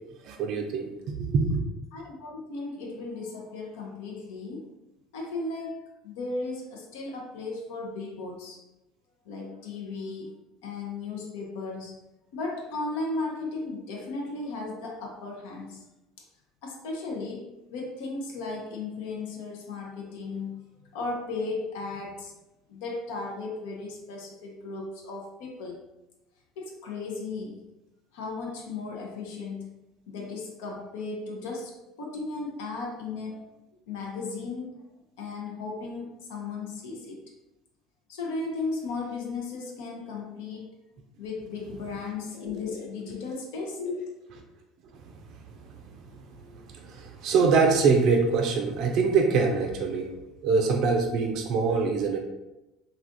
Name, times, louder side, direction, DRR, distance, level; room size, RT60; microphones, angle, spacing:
voice 1, 0.2-1.6 45.0-46.0 46.3-50.1 50.4-52.2, right 4 dB, 55° right, 3 dB, 0.4 m, -25 dB
voice 2, 1.9-4.6 5.1-8.6 9.3-10.3 10.6-12.0 12.3-15.8 16.2-16.3 16.6-20.6 20.9-22.3 22.7-25.8 26.6-27.7 28.1-29.7 30.1-33.5 33.9-34.8 35.2-37.2 38.1-40.7 41.2-44.2, left 3 dB, 70° left, 0 dB, 0.6 m, -35 dB
3.3 x 2.3 x 2.5 m, 0.98 s
hypercardioid pair, 70°, 0 cm